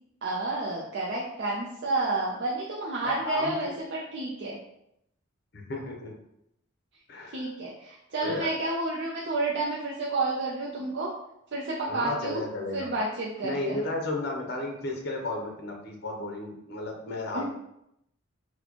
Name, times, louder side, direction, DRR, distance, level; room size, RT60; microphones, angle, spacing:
voice 1, 0.2-4.6 7.3-11.1 11.5-12.4 12.7-13.8 17.3-17.4, right 2 dB, 60° right, -4 dB, 0.5 m, -30 dB
voice 2, 3.0-3.6 5.5-6.1 7.1-7.5 8.2-8.5 11.9-12.9 13.4-17.4, left 2 dB, 55° left, 1 dB, 0.7 m, -33 dB
4.2 x 2.2 x 2.8 m, 0.79 s
head